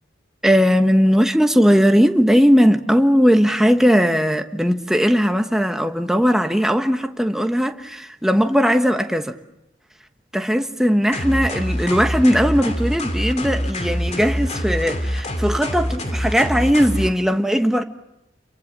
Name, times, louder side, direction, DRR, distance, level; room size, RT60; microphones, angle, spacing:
voice 1, 0.4-9.3 10.3-17.8, equal, 5° right, 1.3 m, -18 dB
sound 1, 11.1-17.1, equal, 40° left, 2.7 m, -25 dB
29.5 x 23.0 x 7.4 m
head